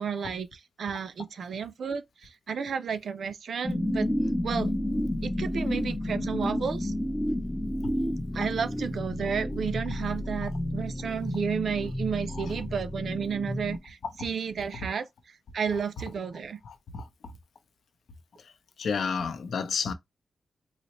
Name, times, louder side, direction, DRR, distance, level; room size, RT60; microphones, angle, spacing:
voice 1, 0.0-4.1 4.4-4.7 5.2-6.9 8.3-15.1 15.5-16.6, right 6 dB, 70° right, 0.4 m, -32 dB
sound 1, 3.6-13.8, left 1 dB, 5° left, 0.4 m, -31 dB
voice 2, 16.6-17.1 18.4-18.5 18.8-19.9, left 5 dB, 85° left, 0.6 m, -31 dB
4.0 x 2.1 x 2.9 m
wide cardioid pair, 170°, 0 cm